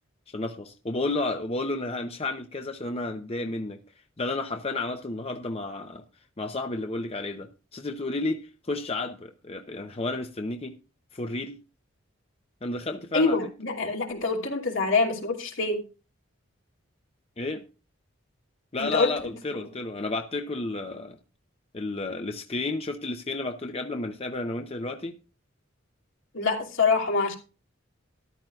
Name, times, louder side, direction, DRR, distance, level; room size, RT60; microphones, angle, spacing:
voice 1, 0.3-6.0 6.4-10.8 11.1-11.6 12.6-13.4 17.4-17.6 18.7-21.2 21.7-25.1, left 2 dB, 30° left, 5 dB, 0.7 m, -32 dB
voice 2, 13.1-15.8 18.8-19.1 26.3-27.4, left 4 dB, 75° left, 0 dB, 2.8 m, -25 dB
13.5 x 12.0 x 2.4 m, 0.32 s
head